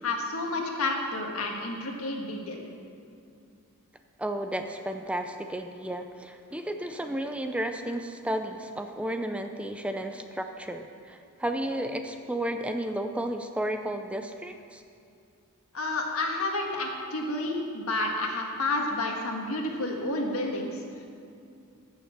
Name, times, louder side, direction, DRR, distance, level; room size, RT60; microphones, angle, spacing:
voice 1, 0.0-2.7 15.7-20.8, left 2 dB, 80° left, 1 dB, 1.6 m, -30 dB
voice 2, 4.2-14.8, right 1 dB, 5° right, 6 dB, 0.4 m, -33 dB
15.0 x 6.4 x 5.9 m, 2.5 s
head